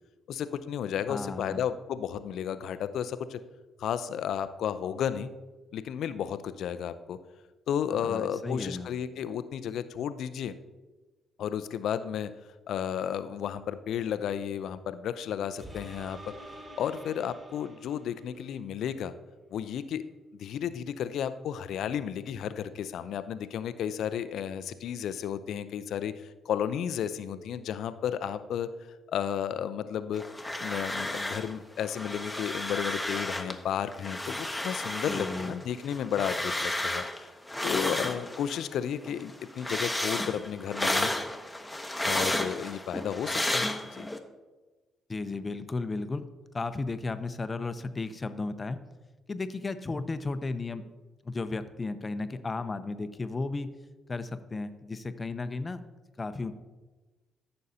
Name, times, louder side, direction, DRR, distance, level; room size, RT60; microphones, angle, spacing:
voice 1, 0.3-3.4 3.8-5.3 5.7-7.2 7.7-10.5 11.4-12.3 12.7-16.2 16.8-19.1 19.5-20.0 20.4-28.7 29.1-30.3 30.6-37.3 37.6-41.1 42.0-44.1, left 9 dB, 65° left, 13 dB, 0.5 m, -33 dB
voice 2, 1.1-1.6 7.9-8.9 35.1-35.5 45.1-46.3 46.5-48.8 49.3-50.8 51.2-53.7 54.1-55.8 56.2-56.5, left 3 dB, 30° left, 11 dB, 0.7 m, -34 dB
sound 1, 15.6-18.5 19.0-19.1, right 1 dB, 35° right, 2.0 m, -47 dB
sound 2, 30.1-31.5 31.8-33.6 33.9-38.7 39.0-44.2, left 1 dB, 10° left, 1.0 m, -32 dB
14.0 x 6.5 x 2.8 m, 1.2 s
hypercardioid pair, 45°, 0 cm